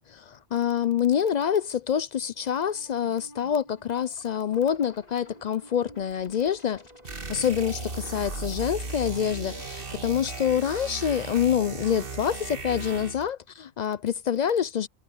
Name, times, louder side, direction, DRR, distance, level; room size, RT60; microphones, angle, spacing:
voice 1, 0.1-6.8 7.3-7.8 8.1-14.9, left 9 dB, 55° left, 0.5 m, -26 dB
sound 1, 2.4-11.7, equal, 40° left, 4.1 m, -52 dB
sound 2, 7.0-13.3, right 3 dB, 55° right, 1.9 m, -36 dB
omnidirectional pair, 1.1 m